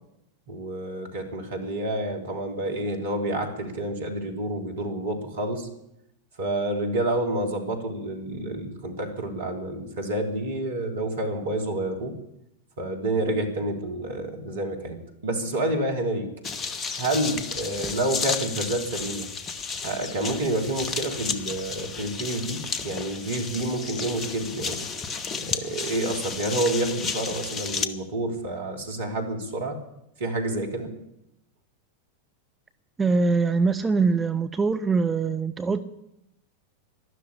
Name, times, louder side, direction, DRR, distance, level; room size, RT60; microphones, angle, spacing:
voice 1, 0.5-5.7 6.4-12.1 12.8-15.0 15.2-16.3 17.0-19.3 19.8-24.8 25.3-29.8 30.2-30.9, right 1 dB, 65° right, 3 dB, 3.3 m, -29 dB
sound 1, 16.4-27.9, left 5 dB, 25° left, 1.2 m, -32 dB
voice 2, 33.0-35.8, right 4 dB, 15° right, 9 dB, 0.7 m, -23 dB
12.5 x 11.5 x 9.8 m, 0.84 s
figure-of-eight pair, 90°, 0 cm